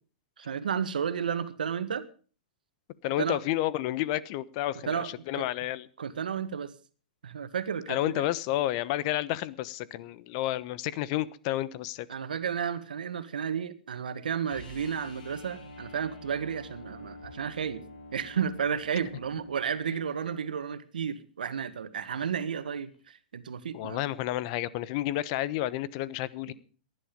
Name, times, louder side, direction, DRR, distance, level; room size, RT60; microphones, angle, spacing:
voice 1, 0.4-2.0 3.2-3.4 4.8-5.1 5.3-5.4 6.0-6.7 7.2-8.3 12.1-17.8 18.1-24.0, right 7 dB, 80° right, 12 dB, 1.6 m, -32 dB
voice 2, 3.0-5.9 7.9-12.1 19.9-20.0 23.7-26.5, left 14 dB, 50° left, 18 dB, 1.1 m, -31 dB
sound 1, 14.5-20.5 22.9-23.0, left 1 dB, 75° left, 5.4 m, -47 dB
18.5 x 11.0 x 5.2 m, 0.41 s
hypercardioid pair, 120°, 5 cm